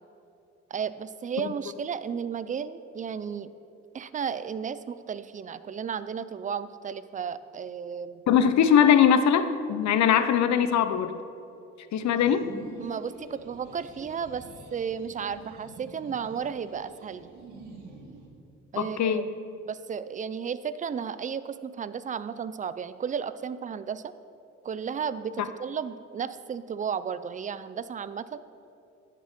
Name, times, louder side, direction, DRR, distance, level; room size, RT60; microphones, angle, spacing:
voice 1, 0.7-3.5 3.9-8.2 12.8-14.4 14.7-17.3 18.7-19.2 19.6-24.1 24.6-28.4, right 7 dB, 25° right, 14 dB, 0.4 m, -33 dB
voice 2, 8.3-11.1 11.9-12.5 18.8-19.2, left 8 dB, 65° left, 11 dB, 0.7 m, -21 dB
sound 1, 12.1-18.3, right 3 dB, 85° right, 1.8 m, -47 dB
10.5 x 6.0 x 5.8 m, 2.7 s
cardioid pair, 90°, 30 cm